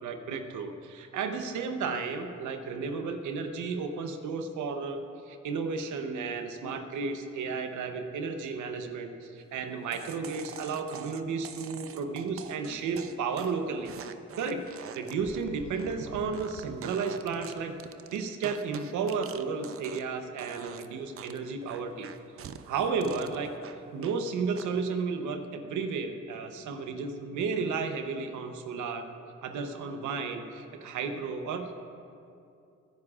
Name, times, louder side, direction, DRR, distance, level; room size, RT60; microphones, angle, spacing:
voice 1, 0.0-13.9 14.4-17.7 18.1-22.1 22.4-23.5 23.9-29.1 29.4-31.7, right 5 dB, 80° right, 6 dB, 0.9 m, -33 dB
sound 1, 9.9-20.1 20.4-20.9 21.2-24.2 24.6-25.0, right 8 dB, 50° right, 0.6 m, -45 dB
24.5 x 9.8 x 2.4 m, 2.6 s
cardioid pair, 90°, 30 cm